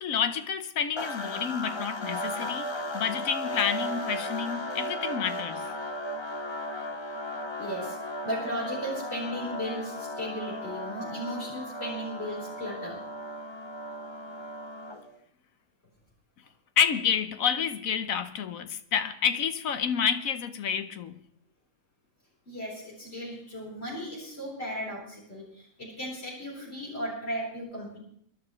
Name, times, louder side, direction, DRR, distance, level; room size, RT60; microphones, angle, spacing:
voice 1, 0.0-5.7 16.8-21.2, left 7 dB, 75° left, 1.3 m, -29 dB
sound 1, 1.0-15.2, left 1 dB, 30° left, 0.5 m, -36 dB
voice 2, 7.6-8.0 8.2-13.0 22.5-28.0, equal, 45° left, 4.5 m, -36 dB
24.5 x 11.5 x 3.2 m
omnidirectional pair, 1.4 m